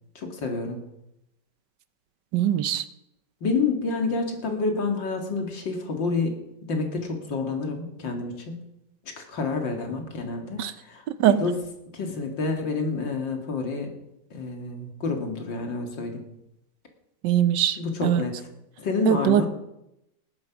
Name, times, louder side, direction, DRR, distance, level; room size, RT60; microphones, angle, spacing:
voice 1, 0.2-0.8 3.4-6.3 6.7-8.6 9.0-11.6 11.9-13.9 14.3-16.3 17.8-18.5 18.8-19.5, left 4 dB, 80° left, 3 dB, 2.8 m, -28 dB
voice 2, 2.3-2.8 10.6-10.7 11.1-11.4 17.2-18.2 19.1-19.5, right 11 dB, 75° right, 14 dB, 1.3 m, -22 dB
17.5 x 10.0 x 5.9 m, 0.87 s
omnidirectional pair, 2.0 m